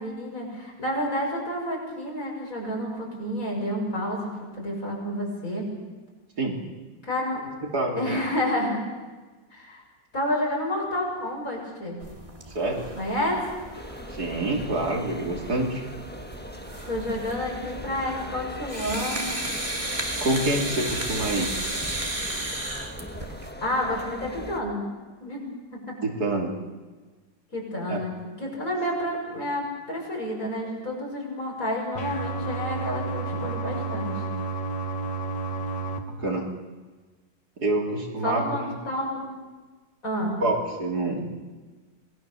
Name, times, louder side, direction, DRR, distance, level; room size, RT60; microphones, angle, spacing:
voice 1, 0.0-4.3 4.6-5.7 7.0-7.4 8.0-8.8 9.5-9.8 10.1-12.0 13.0-13.4 16.9-19.2 23.6-24.9 25.2-25.5 25.7-26.0 27.5-34.2 38.2-39.3 40.0-40.4, left 1 dB, 45° left, -2 dB, 7.6 m, -29 dB
voice 2, 7.7-8.2 12.6-12.9 14.2-15.8 20.2-21.5 26.0-26.5 27.9-28.0 36.2-36.5 37.6-38.6 40.4-41.3, right 2 dB, 55° right, 0 dB, 3.5 m, -26 dB
sound 1, 12.0-23.5, right 1 dB, 15° right, 2.4 m, -34 dB
sound 2, 13.7-24.6, left 1 dB, 5° left, 1.1 m, -40 dB
sound 3, 32.0-36.0, right 3 dB, 80° left, 2.4 m, -31 dB
27.0 x 20.0 x 7.0 m, 1.3 s
omnidirectional pair, 2.0 m